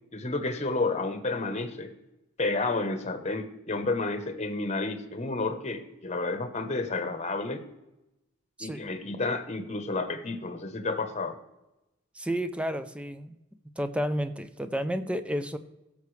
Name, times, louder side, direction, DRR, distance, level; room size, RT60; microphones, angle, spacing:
voice 1, 0.1-1.9 2.4-7.6 8.6-11.4, left 3 dB, 35° left, 8 dB, 1.0 m, -31 dB
voice 2, 12.2-13.4 13.8-15.6, equal, 5° right, 10 dB, 0.5 m, -31 dB
16.0 x 6.9 x 3.2 m, 0.94 s
head